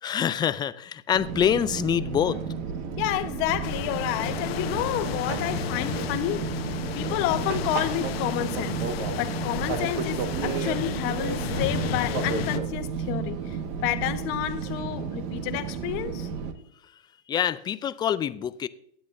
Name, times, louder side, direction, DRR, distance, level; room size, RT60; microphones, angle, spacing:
voice 1, 0.0-2.4 17.3-18.7, left 9 dB, 15° left, 0.3 m, -25 dB
Fixed-wing aircraft airplane, 1.1-16.5, right 6 dB, 50° right, 1.6 m, -32 dB
voice 2, 3.0-8.8 9.2-16.3, left 13 dB, 45° left, 1.1 m, -30 dB
sound 1, 3.6-12.6, left 10 dB, 75° left, 1.0 m, -33 dB
16.5 x 10.5 x 2.7 m
hypercardioid pair, 125°, 30 cm